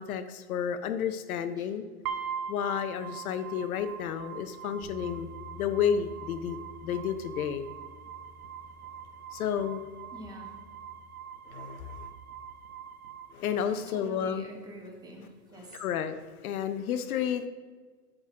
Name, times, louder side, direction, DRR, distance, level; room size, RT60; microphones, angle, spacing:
voice 1, 0.0-1.9 2.5-5.3 5.6-6.6 6.8-7.7 9.3-9.8 11.5-12.1 13.3-14.4 15.7-17.5, left 8 dB, 65° left, 9 dB, 0.6 m, -31 dB
sound 1, 2.0-14.1, right 8 dB, 65° right, 1.0 m, -43 dB
sound 2, 4.8-11.1, left 3 dB, 20° left, 2.3 m, -51 dB
voice 2, 10.1-10.6 13.7-15.8, right 1 dB, 10° right, 1 dB, 1.1 m, -46 dB
8.8 x 3.7 x 5.9 m, 1.5 s
hypercardioid pair, 140°, 46 cm